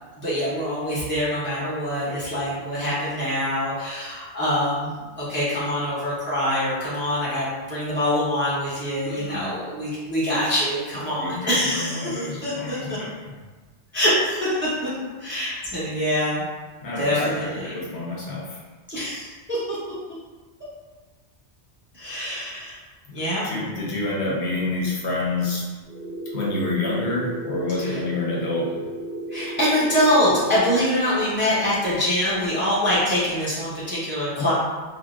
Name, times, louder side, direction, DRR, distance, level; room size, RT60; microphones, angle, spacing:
voice 1, 0.2-4.9 5.2-13.0 13.9-14.9 15.2-16.4 17.0-17.7 18.9-19.8 21.9-22.8 23.1-23.5 27.8-28.0 29.3-34.5, left 1 dB, 15° right, -9 dB, 0.6 m, -24 dB
voice 2, 9.0-9.4 11.1-13.3 16.8-18.6 23.4-25.6 26.3-28.8 34.4-34.5, left 2 dB, 70° left, -4 dB, 1.0 m, -28 dB
sound 1, 25.9-30.8, right 1 dB, 30° right, 1.4 m, -34 dB
3.7 x 2.0 x 2.3 m, 1.3 s
omnidirectional pair, 1.2 m